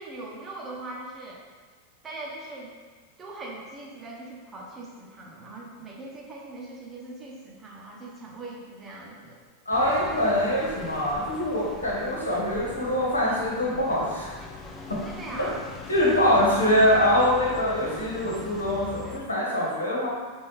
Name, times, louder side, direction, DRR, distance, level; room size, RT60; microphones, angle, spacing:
voice 1, 0.0-1.4 2.0-2.7 3.2-9.4 15.0-15.6 16.0-16.2 17.5-17.6, right 2 dB, 20° right, -3 dB, 0.8 m, -40 dB
voice 2, 9.7-14.3 14.9-15.0 15.4-15.5 15.9-20.1, left 1 dB, 75° left, -5 dB, 1.2 m, -24 dB
sound 1, 9.7-19.2, left 4 dB, 20° left, 0.5 m, -41 dB
5.3 x 2.5 x 3.7 m, 1.5 s
figure-of-eight pair, 90°, 0 cm